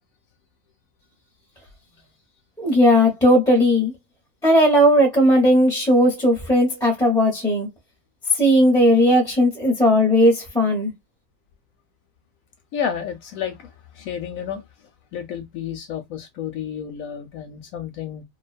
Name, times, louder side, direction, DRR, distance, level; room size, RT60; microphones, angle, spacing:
voice 1, 2.6-3.9 4.4-7.7 8.3-10.9, equal, 5° left, 0.8 m, -17 dB
voice 2, 12.7-14.6 15.1-18.2, left 8 dB, 70° left, 0.9 m, -31 dB
2.6 x 2.3 x 2.3 m
omnidirectional pair, 1.6 m